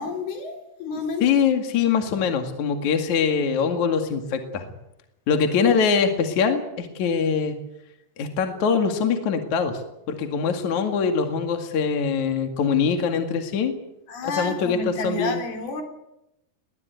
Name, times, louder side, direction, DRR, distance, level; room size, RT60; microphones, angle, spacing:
voice 1, 0.0-1.3 5.6-5.8 14.1-15.8, left 2 dB, 75° left, 5 dB, 5.4 m, -30 dB
voice 2, 1.2-4.7 5.3-7.6 8.2-9.8 10.1-13.7 14.2-15.4, left 6 dB, 55° left, 5 dB, 3.2 m, -23 dB
21.5 x 19.0 x 9.3 m, 0.84 s
omnidirectional pair, 4.5 m